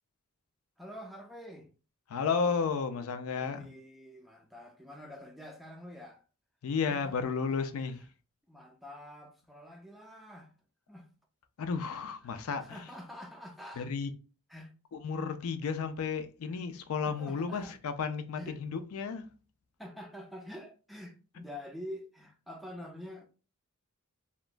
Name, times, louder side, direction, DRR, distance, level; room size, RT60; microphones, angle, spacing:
voice 1, 0.8-1.7 3.3-6.2 6.9-7.7 8.5-10.5 10.9-11.1 12.2-13.9 14.5-14.7 17.0-17.7 18.4-18.6 19.8-23.3, left 1 dB, ahead, 0.4 m, -47 dB
voice 2, 2.1-3.7 6.6-8.0 11.6-12.8 13.8-14.1 14.9-19.3, left 5 dB, 70° left, 0.4 m, -33 dB
2.9 x 2.2 x 2.4 m
head